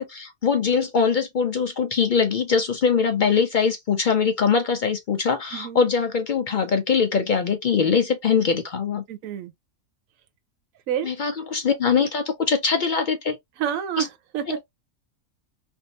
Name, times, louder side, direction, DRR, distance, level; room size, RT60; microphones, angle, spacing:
voice 1, 0.0-9.0 11.0-13.4 14.0-14.1 14.5-14.6, left 6 dB, 70° left, 0.4 m, -22 dB
voice 2, 5.5-5.8 9.1-9.5 10.9-11.1 13.6-14.6, right 9 dB, 75° right, 1.0 m, -28 dB
3.4 x 2.6 x 2.7 m
omnidirectional pair, 1.4 m